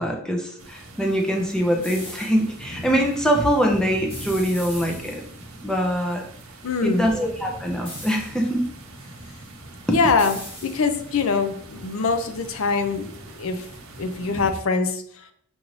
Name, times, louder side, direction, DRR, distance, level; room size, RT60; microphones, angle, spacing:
voice 1, 0.0-5.2 5.6-6.2 6.8-8.7 9.9-10.0, equal, 5° left, 1 dB, 0.5 m, -23 dB
sound 1, 0.6-14.5, right 1 dB, 65° right, 0.7 m, -41 dB
sound 2, 1.8-2.6 4.1-5.5 7.9-8.6 10.2-11.2, equal, 25° left, 1.1 m, -40 dB
voice 2, 6.6-7.1 9.9-10.4 10.6-13.7 14.0-15.0, left 4 dB, 65° left, 8 dB, 0.5 m, -23 dB
6.1 x 2.6 x 3.0 m, 0.64 s
head